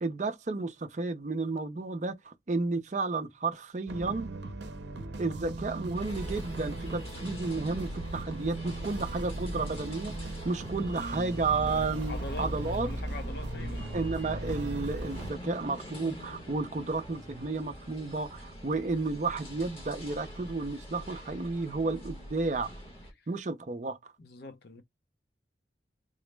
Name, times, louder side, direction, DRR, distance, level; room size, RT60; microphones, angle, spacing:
voice 1, 0.0-4.3 5.2-12.9 13.9-22.8 23.3-24.0, right 3 dB, 45° right, 0.5 m, -32 dB
sound 1, 3.9-15.3, right 1 dB, 80° right, 0.6 m, -37 dB
sound 2, 5.9-23.1, equal, 30° left, 1.0 m, -45 dB
voice 2, 12.1-14.0 23.2-23.3 24.2-24.8, left 2 dB, 65° left, 0.6 m, -43 dB
3.8 x 2.0 x 3.2 m
head